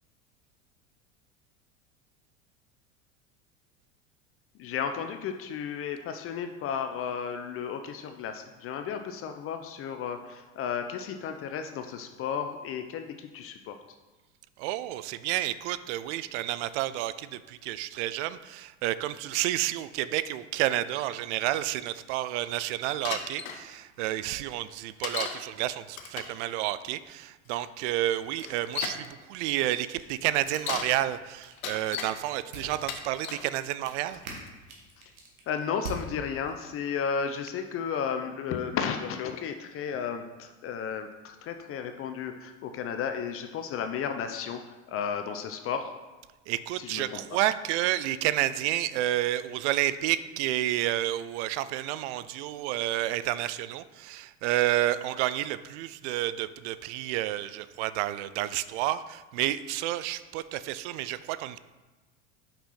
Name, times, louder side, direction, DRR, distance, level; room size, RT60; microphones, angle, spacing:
voice 1, 4.6-13.8 35.5-44.6 44.9-45.9 46.8-47.2, left 7 dB, 35° left, 7 dB, 0.5 m, -33 dB
voice 2, 14.6-34.2 46.5-61.6, right 14 dB, 60° right, 15 dB, 0.5 m, -30 dB
Bicycle, 23.0-23.6 25.0-25.4 25.9-26.4 27.5-27.6 28.4-29.1 30.4-30.9 31.4-32.1 32.7-33.5 34.1-34.5, left 7 dB, 80° left, 0.9 m, -35 dB
sound 1, 29.7-36.8, right 2 dB, 85° right, 1.6 m, -46 dB
5.8 x 5.4 x 4.2 m, 1.2 s
hypercardioid pair, 90°, 40 cm